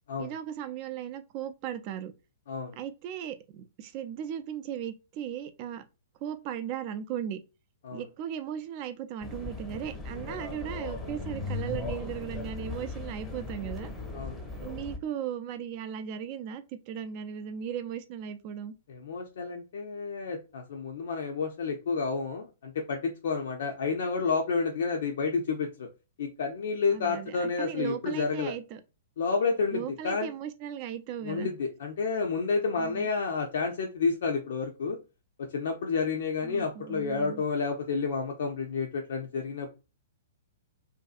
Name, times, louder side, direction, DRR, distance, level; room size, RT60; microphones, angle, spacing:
voice 1, 0.2-2.1 2.8-5.8 6.2-7.4 7.9-13.9 14.6-18.7 26.9-28.8 29.7-31.5 32.8-33.1 36.4-37.4, right 9 dB, 40° right, 0.4 m, -37 dB
sound 1, 9.2-15.0, left 3 dB, 15° left, 0.6 m, -37 dB
voice 2, 18.9-25.9 26.2-28.5 29.2-30.3 31.2-35.0 35.5-39.7, left 4 dB, 65° left, 0.5 m, -30 dB
2.6 x 2.2 x 2.4 m
figure-of-eight pair, 115°, 0 cm